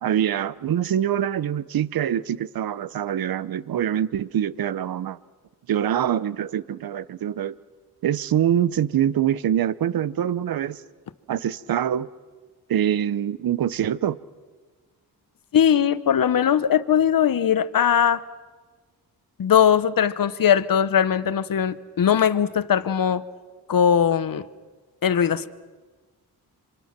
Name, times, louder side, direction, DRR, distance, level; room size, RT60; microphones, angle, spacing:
voice 1, 0.0-5.2 5.7-7.6 8.0-10.8 11.3-12.1 12.7-14.2, right 10 dB, 65° right, 18 dB, 0.8 m, -24 dB
voice 2, 15.5-18.2 19.4-23.2 23.7-24.4 25.0-25.5, left 8 dB, 60° left, 14 dB, 1.1 m, -20 dB
27.0 x 25.5 x 6.0 m, 1.4 s
cardioid pair, 70°, 39 cm